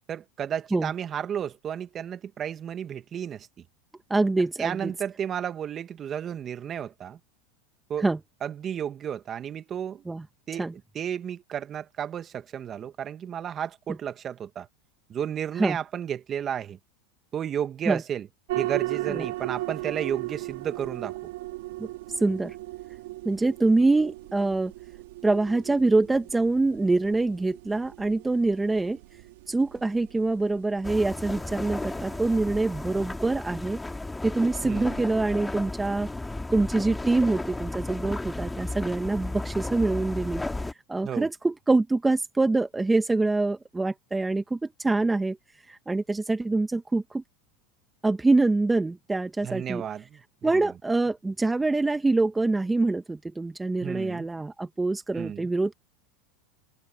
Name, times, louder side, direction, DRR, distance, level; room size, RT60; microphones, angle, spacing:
voice 1, 0.1-3.5 4.6-7.2 7.9-8.0 8.4-10.0 10.5-10.6 10.9-14.7 15.1-16.8 17.3-18.3 18.5-21.1 34.6-35.0 41.0-41.3 49.4-50.7 53.8-54.3 55.1-55.5, right 9 dB, 30° right, 1.6 m, -32 dB
voice 2, 4.1-4.9 8.0-8.2 10.1-10.2 10.6-10.7 15.6-15.8 17.9-18.0 19.1-19.2 21.8-21.9 22.2-22.5 23.2-24.7 25.2-29.0 29.5-33.8 34.2-36.1 36.5-40.4 40.9-45.4 45.7-47.2 48.0-49.8 50.4-55.7, right 2 dB, 10° right, 1.2 m, -25 dB
sound 1, 18.5-33.3, right 19 dB, 75° right, 2.9 m, -37 dB
sound 2, 30.8-40.7, left 2 dB, 10° left, 2.4 m, -34 dB
supercardioid pair, 120°, 0 cm